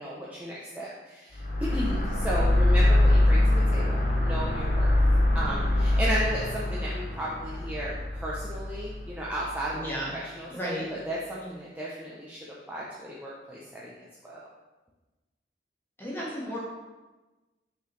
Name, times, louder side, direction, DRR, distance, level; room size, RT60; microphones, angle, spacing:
voice 1, 0.0-5.0 5.3-9.9 10.1-14.5, equal, 10° right, -6 dB, 0.6 m, -35 dB
sound 1, 1.3-9.7, left 1 dB, 40° left, 0.8 m, -24 dB
voice 2, 9.7-10.1 10.5-10.9 11.4-11.5 16.0-16.6, equal, 10° left, -5 dB, 1.5 m, -33 dB
6.0 x 5.5 x 3.1 m, 1.2 s
head